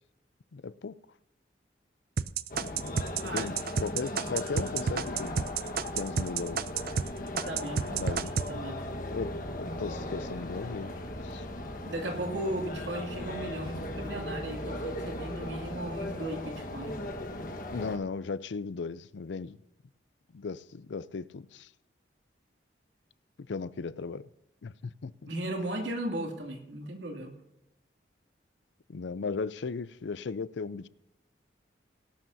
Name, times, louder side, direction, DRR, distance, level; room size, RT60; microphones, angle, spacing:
voice 1, 0.5-1.0 3.3-5.5 5.9-6.6 7.9-8.3 9.1-11.5 17.7-19.6 20.3-21.7 23.5-24.3 24.6-25.3 28.9-30.9, left 4 dB, 80° left, 0.5 m, -36 dB
sound 1, 2.2-7.1 7.4-8.5, right 6 dB, 50° right, 0.4 m, -30 dB
sound 2, 2.5-18.0, left 1 dB, 50° left, 1.4 m, -37 dB
voice 2, 7.5-8.2 8.5-8.9 11.9-17.0 25.2-27.3, right 1 dB, 80° right, 2.5 m, -36 dB
18.5 x 12.0 x 2.7 m
head